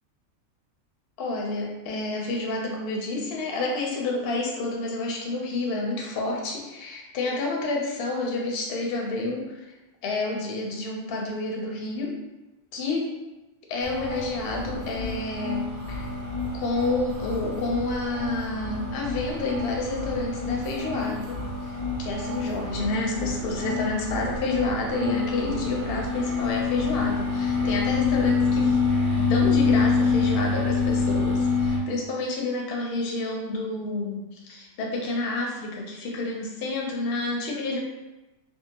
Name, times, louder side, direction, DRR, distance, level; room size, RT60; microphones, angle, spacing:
voice 1, 1.2-9.7 10.0-12.1 12.7-13.1 13.7-16.1 16.5-21.4 22.0-28.8 29.2-37.8, left 2 dB, 60° left, -1 dB, 0.7 m, -29 dB
sound 1, 13.8-31.8, left 4 dB, 55° right, 0.6 m, -27 dB
Wind instrument woodwind instrument, 24.9-29.0, right 4 dB, 85° right, 1.1 m, -46 dB
2.7 x 2.3 x 2.7 m, 1.1 s
omnidirectional pair, 1.4 m